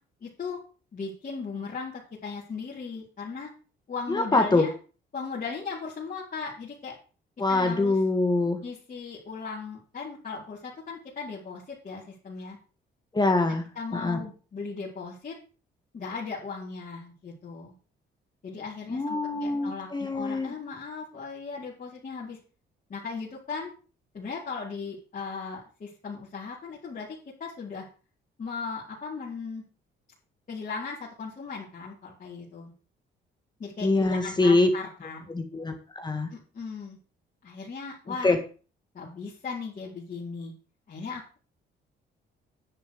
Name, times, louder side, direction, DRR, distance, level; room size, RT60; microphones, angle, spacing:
voice 1, 0.2-0.6 0.9-3.5 3.9-4.7 5.1-7.0 7.5-8.0 8.6-12.6 13.7-15.4 15.9-17.7 18.4-22.4 22.9-23.7 24.1-27.8 28.4-29.6 30.5-32.7 33.6-35.3 36.3-37.0 37.4-38.4 38.9-40.5 40.9-41.4, left 5 dB, 45° left, -7 dB, 4.4 m, -37 dB
voice 2, 4.1-4.7 7.4-8.6 13.1-13.7 13.9-14.2 18.9-20.5 33.8-34.7 35.3-36.3 38.1-38.4, left 2 dB, 20° left, 6 dB, 1.9 m, -24 dB
10.5 x 7.1 x 6.8 m, 0.37 s
cardioid pair, 90°, 20 cm